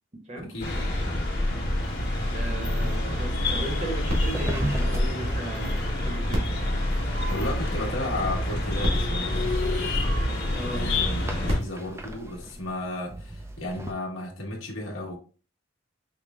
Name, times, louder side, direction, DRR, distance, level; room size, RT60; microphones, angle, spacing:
voice 1, 0.4-1.3 7.2-9.5 10.6-15.2, left 1 dB, 80° left, 1.2 m, -34 dB
sound 1, 0.6-11.6, left 1 dB, 50° left, 1.3 m, -27 dB
voice 2, 2.3-6.6 10.5-10.9, right 1 dB, 35° right, 0.9 m, -36 dB
sound 2, 3.1-13.9, right 1 dB, 15° right, 0.3 m, -38 dB
sound 3, 4.1-5.7 6.2-7.8 8.5-8.6 8.8-10.4 11.2-13.0 13.7-13.8, equal, 85° right, 1.6 m, -35 dB
5.0 x 2.1 x 3.5 m
head